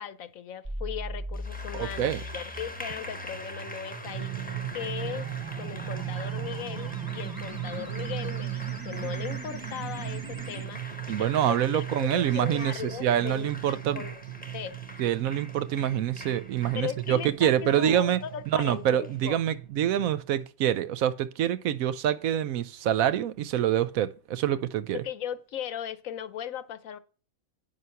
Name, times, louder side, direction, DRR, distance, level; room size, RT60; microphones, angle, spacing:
voice 1, 0.0-5.3 5.6-14.2 14.5-14.8 16.7-19.4 24.9-27.0, left 9 dB, 70° left, 1.1 m, -38 dB
sound 1, 0.6-10.6, right 1 dB, 20° right, 0.6 m, -41 dB
Applause, 1.3-19.2, left 1 dB, 5° left, 0.9 m, -44 dB
voice 2, 1.7-2.2 11.1-14.0 15.0-18.2 18.5-25.0, right 10 dB, 70° right, 1.0 m, -26 dB
Drum, 4.0-20.2, right 14 dB, 50° right, 0.9 m, -38 dB
9.6 x 5.8 x 5.7 m
omnidirectional pair, 1.5 m